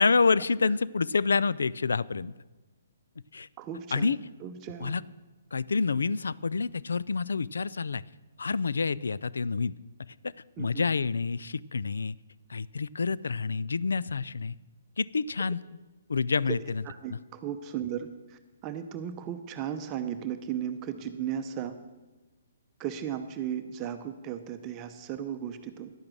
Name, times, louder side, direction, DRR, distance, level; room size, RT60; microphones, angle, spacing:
voice 1, 0.0-2.3 3.3-3.5 3.9-4.2 4.8-5.0 5.5-8.0 8.4-9.7 10.2-10.3 10.6-12.2 12.5-14.6 15.0-15.6 16.1-16.8 17.1-17.2, left 4 dB, 85° left, 19 dB, 0.3 m, -28 dB
voice 2, 3.6-5.0 10.6-10.8 16.4-16.6 16.8-21.8 22.8-25.9, right 9 dB, 25° right, 7 dB, 0.7 m, -36 dB
11.0 x 8.7 x 6.2 m, 1.2 s
hypercardioid pair, 145°, 0 cm